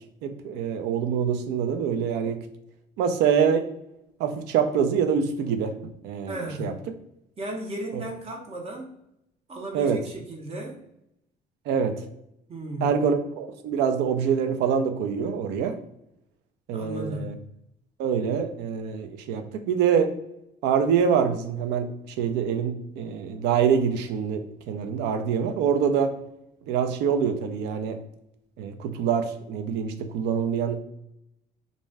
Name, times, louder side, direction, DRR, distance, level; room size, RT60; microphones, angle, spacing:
voice 1, 0.2-2.4 3.0-3.7 4.2-5.8 6.0-6.7 7.9-8.0 9.7-10.0 11.7-12.0 12.8-15.8 16.7-17.4 18.0-20.1 20.6-26.2 26.7-28.0 28.6-30.8, right 7 dB, 85° right, 8 dB, 0.4 m, -25 dB
voice 2, 6.3-6.9 7.4-9.0 9.5-10.8 12.5-13.0 16.7-17.4, right 1 dB, 35° right, 1 dB, 0.6 m, -35 dB
2.6 x 2.1 x 3.2 m, 0.80 s
cardioid pair, 110°, 17 cm